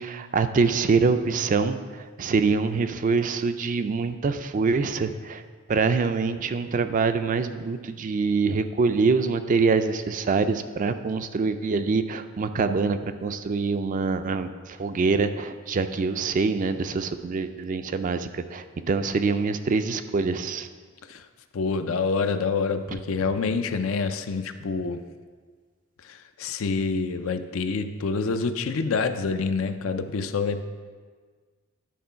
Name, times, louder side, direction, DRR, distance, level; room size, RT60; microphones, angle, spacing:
voice 1, 0.0-5.4 5.7-20.7, right 4 dB, 40° right, 10 dB, 0.3 m, -25 dB
voice 2, 21.5-25.0 26.0-30.6, left 4 dB, 70° left, 9 dB, 0.5 m, -27 dB
10.5 x 3.7 x 5.6 m, 1.5 s
head